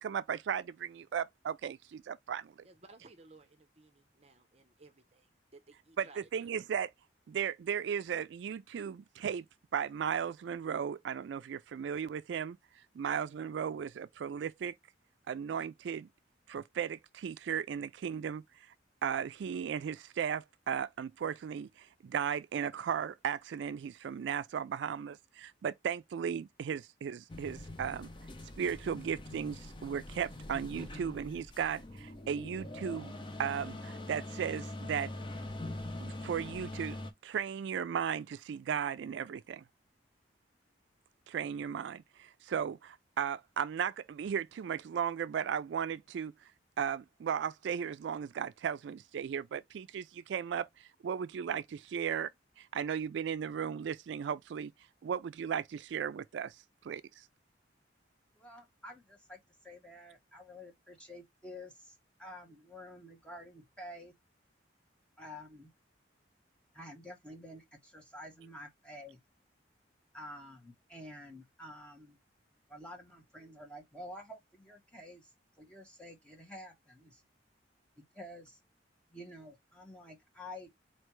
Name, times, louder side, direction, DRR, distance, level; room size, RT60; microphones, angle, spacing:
voice 1, 0.0-2.5 6.0-6.1 6.3-6.9 7.3-9.5 9.7-12.6 12.9-14.7 15.3-16.1 16.5-18.4 19.0-28.1 28.6-33.1 33.4-35.1 36.0-37.0 37.2-39.6 41.3-46.3 46.8-52.3 52.6-54.7 55.0-56.6 56.8-57.3, right 8 dB, 75° right, 0.3 m, -36 dB
voice 2, 2.6-6.5, right 3 dB, 35° right, 0.7 m, -59 dB
sound 1, 27.3-37.1, left 1 dB, 25° left, 0.7 m, -43 dB
voice 3, 58.4-64.1 65.2-65.7 66.7-69.2 70.1-72.2 72.7-75.3 75.6-77.2 78.0-78.6 79.1-80.8, left 1 dB, 5° left, 1.4 m, -49 dB
4.3 x 3.2 x 3.0 m
head